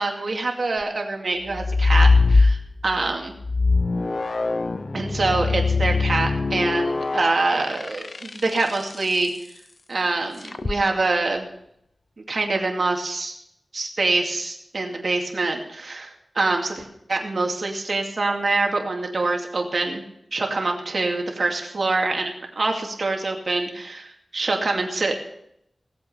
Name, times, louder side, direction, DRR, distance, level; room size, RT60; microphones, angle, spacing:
voice 1, 0.0-3.3 4.9-9.3 9.9-11.5 12.3-13.3 13.7-20.0 20.3-25.2, right 3 dB, 60° right, 2 dB, 2.4 m, -25 dB
sound 1, 1.5-2.9 3.4-8.9 10.4-10.8, left 3 dB, 50° left, 0.6 m, -21 dB
18.5 x 7.8 x 5.7 m, 0.77 s
wide cardioid pair, 80°, 0 cm